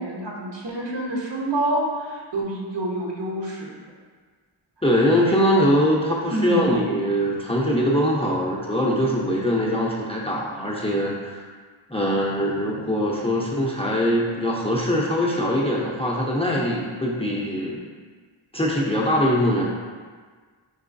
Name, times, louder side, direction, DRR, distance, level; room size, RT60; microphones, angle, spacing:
voice 1, 0.0-3.8 6.3-6.9, right 1 dB, 60° right, -4 dB, 0.9 m, -27 dB
voice 2, 4.8-11.5 11.9-17.8 18.5-19.6, equal, 15° left, -4 dB, 0.5 m, -22 dB
4.6 x 3.0 x 2.5 m, 1.5 s
wide cardioid pair, 50°, 47 cm